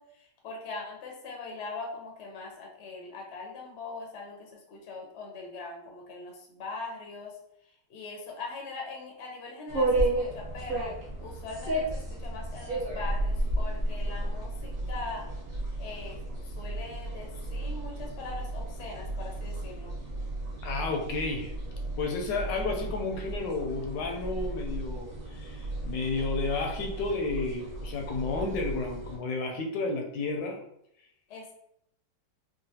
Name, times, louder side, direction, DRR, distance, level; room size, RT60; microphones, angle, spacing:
voice 1, 0.0-7.4 7.9-10.9 11.2-15.3 15.8-19.9 31.3-31.5, left 3 dB, 60° left, -1 dB, 0.7 m, -41 dB
sound 1, 9.7-29.2, right 1 dB, 40° right, 0.8 m, -33 dB
voice 2, 20.6-21.5 22.0-30.6, left 3 dB, 80° left, 2 dB, 1.2 m, -32 dB
3.8 x 2.1 x 2.7 m, 0.74 s
omnidirectional pair, 2.0 m